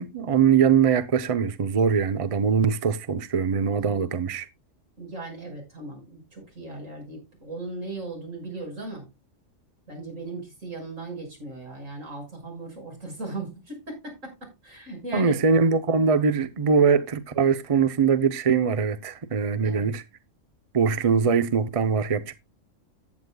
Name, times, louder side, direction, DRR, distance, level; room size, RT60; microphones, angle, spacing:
voice 1, 0.0-4.5 15.1-20.0 20.7-22.3, right 6 dB, 35° right, 0.6 m, -22 dB
voice 2, 3.7-4.1 5.0-9.1 9.9-15.4 19.6-19.9, right 2 dB, 75° right, 6.6 m, -37 dB
14.5 x 9.5 x 2.2 m
omnidirectional pair, 1.3 m